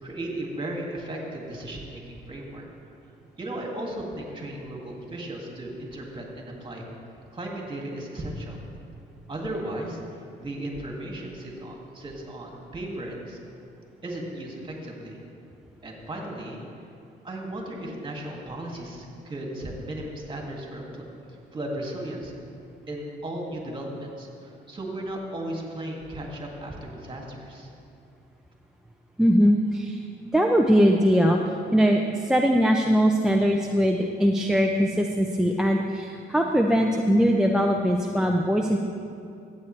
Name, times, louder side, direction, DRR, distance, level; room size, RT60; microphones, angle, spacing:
voice 1, 0.0-2.0 2.3-2.6 3.4-6.8 7.3-8.6 9.3-10.0 10.4-13.4 14.0-15.2 15.8-16.6 17.2-21.0 21.5-22.3 22.9-27.7, right 1 dB, 25° right, -1 dB, 2.2 m, -35 dB
voice 2, 29.2-30.0 30.3-31.4 31.7-38.8, equal, 5° right, 3 dB, 0.5 m, -21 dB
14.5 x 8.4 x 3.3 m, 2.6 s
cardioid pair, 90°, 20 cm